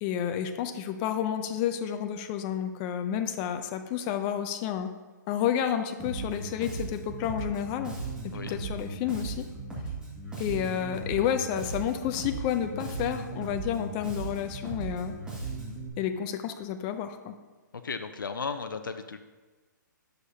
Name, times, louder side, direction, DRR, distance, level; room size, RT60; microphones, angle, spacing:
voice 1, 0.0-4.9 5.3-8.0 8.2-9.5 10.4-15.1 16.0-17.3, left 9 dB, 25° left, 7 dB, 0.5 m, -30 dB
Bass guitar, 6.0-15.9, right 3 dB, 10° right, 1.9 m, -37 dB
voice 2, 17.8-19.2, left 5 dB, 85° left, 8 dB, 0.5 m, -35 dB
9.7 x 6.5 x 2.8 m, 1.3 s
hypercardioid pair, 145°, 11 cm